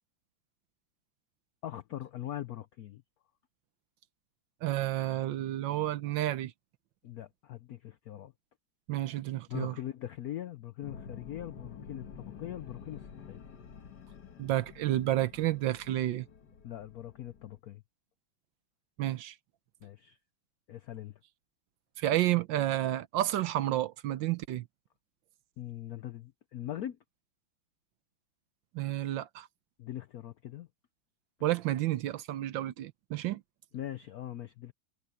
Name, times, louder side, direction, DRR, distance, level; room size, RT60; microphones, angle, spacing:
voice 1, 1.6-3.0 7.0-8.3 9.5-13.4 16.6-17.8 19.8-20.2 20.7-21.2 25.6-27.0 29.8-30.7 33.7-34.7, left 12 dB, 75° left, 0.8 m, -41 dB
voice 2, 4.6-6.5 8.9-9.7 14.4-16.3 19.0-19.3 22.0-24.7 28.7-29.5 31.4-33.4, right 14 dB, 70° right, 1.3 m, -30 dB
sound 1, 10.8-17.6, left 6 dB, 55° left, 1.8 m, -49 dB
omnidirectional pair, 2.3 m